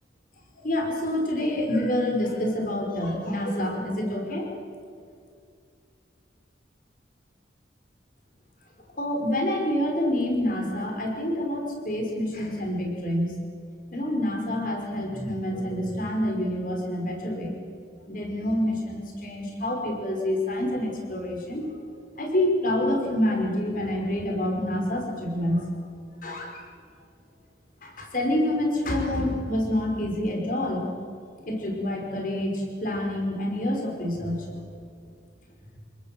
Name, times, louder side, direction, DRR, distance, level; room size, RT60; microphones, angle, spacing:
voice 1, 0.6-4.5 9.0-13.3 13.9-17.6 18.1-21.8 22.2-25.7 26.2-26.6 27.8-30.9 31.5-34.5, left 1 dB, 45° left, 1 dB, 5.3 m, -27 dB
28.5 x 19.5 x 7.8 m, 2.3 s
head